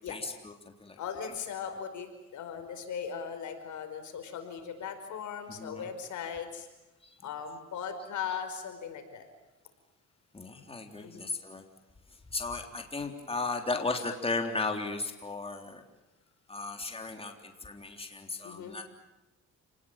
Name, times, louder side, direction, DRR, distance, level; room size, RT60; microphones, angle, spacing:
voice 1, 0.1-1.0 5.5-5.9 7.0-7.2 10.3-11.6 12.1-15.8 16.5-18.8, left 3 dB, 20° left, 4 dB, 3.6 m, -35 dB
voice 2, 1.0-6.7 7.2-9.3 11.0-11.2 18.4-18.8, left 7 dB, 75° left, 7 dB, 5.0 m, -38 dB
30.0 x 20.0 x 9.0 m, 1.0 s
cardioid pair, 90°, 30 cm